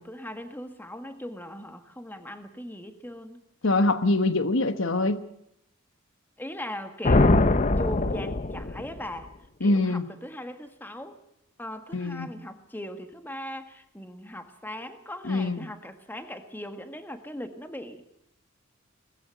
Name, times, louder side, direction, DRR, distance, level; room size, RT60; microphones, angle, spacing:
voice 1, 0.0-3.4 6.4-7.4 7.8-9.3 9.6-11.2 11.6-18.1, left 1 dB, 10° left, 8 dB, 1.6 m, -39 dB
voice 2, 3.6-5.2 9.6-10.0 11.9-12.3 15.2-15.7, left 2 dB, 65° left, 11 dB, 1.1 m, -24 dB
sound 1, 7.0-9.0, left 2 dB, 35° left, 0.8 m, -22 dB
20.0 x 14.5 x 9.1 m, 0.77 s
head